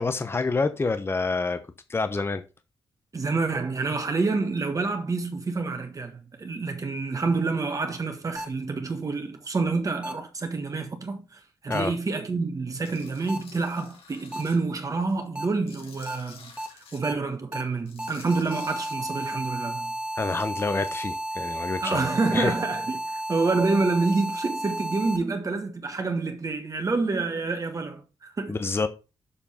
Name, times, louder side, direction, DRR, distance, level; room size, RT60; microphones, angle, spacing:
voice 1, 0.0-1.6 1.9-2.4 11.7-11.9 20.2-22.5 28.5-28.9, left 4 dB, 25° left, 0.9 m, -27 dB
voice 2, 3.1-16.5 16.9-19.9 21.8-28.6, right 3 dB, 35° right, 1.5 m, -28 dB
sound 1, 8.4-8.5 10.0-10.1 11.7-11.8 13.3-13.4 14.3-14.4 15.4-15.5 16.1-16.2 16.6-16.7 17.0-17.1 17.5-17.6 18.0-25.2, right 1 dB, 10° right, 1.5 m, -32 dB
Tools, 12.8-14.6 15.0-17.0 17.8-18.9, left 5 dB, 75° left, 2.6 m, -50 dB
7.0 x 5.2 x 5.7 m
cardioid pair, 100°, 9 cm